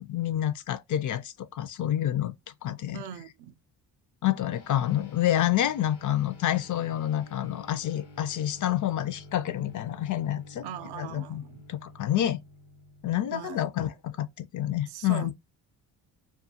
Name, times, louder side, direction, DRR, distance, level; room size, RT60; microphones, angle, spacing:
voice 1, 0.0-2.3 2.6-3.0 4.2-10.6 11.0-11.4 11.7-12.4 13.0-15.3, left 12 dB, 50° left, 0.4 m, -28 dB
voice 2, 2.9-3.5 10.6-11.6 13.3-13.6 14.9-15.3, right 9 dB, 70° right, 0.5 m, -40 dB
sound 1, 4.5-14.3, left 2 dB, 80° left, 1.0 m, -50 dB
2.4 x 2.3 x 2.7 m
supercardioid pair, 65°, 41 cm